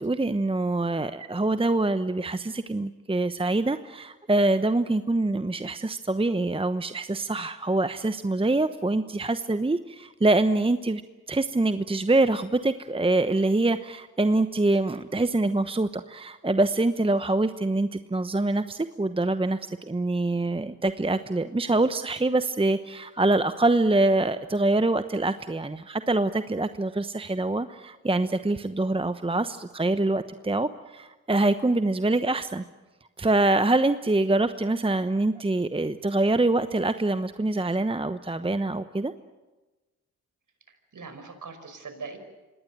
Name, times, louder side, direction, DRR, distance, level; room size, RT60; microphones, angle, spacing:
voice 1, 0.0-11.0 11.3-32.6 33.2-39.1, right 2 dB, 15° right, 11 dB, 1.0 m, -25 dB
voice 2, 40.7-42.2, right 4 dB, 50° right, 8 dB, 5.4 m, -41 dB
25.5 x 19.0 x 9.0 m, 1.2 s
hypercardioid pair, 45°, 39 cm